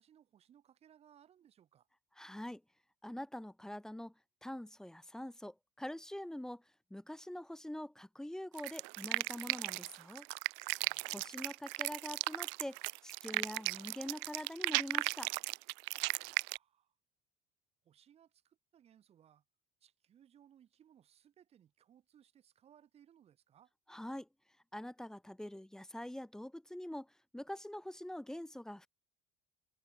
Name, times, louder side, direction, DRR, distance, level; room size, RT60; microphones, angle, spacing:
voice 1, 0.0-1.9 10.8-11.1 16.1-17.0 17.8-19.4 19.8-23.7, right 10 dB, 35° right, 6.8 m, -65 dB
voice 2, 2.2-2.6 3.0-4.1 4.4-6.6 6.9-10.3 11.1-12.8 13.0-15.3 23.9-24.3 24.7-28.9, left 1 dB, 5° left, 1.0 m, -44 dB
sound 1, 8.6-16.6, right 35 dB, 80° right, 0.6 m, -36 dB
cardioid pair, 160°, 18 cm